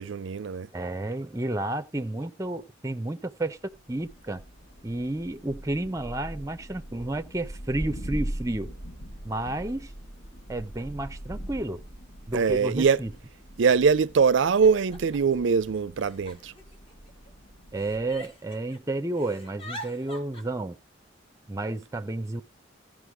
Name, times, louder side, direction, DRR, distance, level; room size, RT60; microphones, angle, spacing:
voice 1, 0.0-0.7 12.3-13.0 13.6-16.5, right 5 dB, 70° right, 0.4 m, -22 dB
voice 2, 0.7-4.4 4.8-8.7 9.2-9.9 10.5-11.8 12.3-13.1 17.7-20.8 21.5-22.4, right 2 dB, 15° right, 0.6 m, -31 dB
Thunder, 3.7-18.3, right 1 dB, 65° left, 4.1 m, -41 dB
Giggle, 11.7-11.8 12.7-12.8 13.1-13.6 14.3-15.4 16.0-17.3 17.8-18.8 19.1-20.4, left 1 dB, 30° left, 1.9 m, -45 dB
15.0 x 5.2 x 4.8 m
head